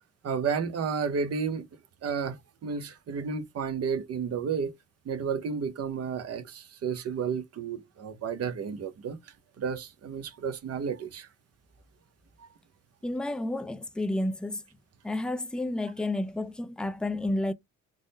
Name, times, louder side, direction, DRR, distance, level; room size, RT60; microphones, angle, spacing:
voice 1, 0.2-1.7 2.0-4.7 5.0-9.2 9.6-11.3 12.4-12.5, right 6 dB, 55° right, 0.8 m, -32 dB
voice 2, 13.0-14.6 15.0-17.5, left 1 dB, 5° left, 0.4 m, -31 dB
3.7 x 2.1 x 3.9 m
cardioid pair, 90°, 30 cm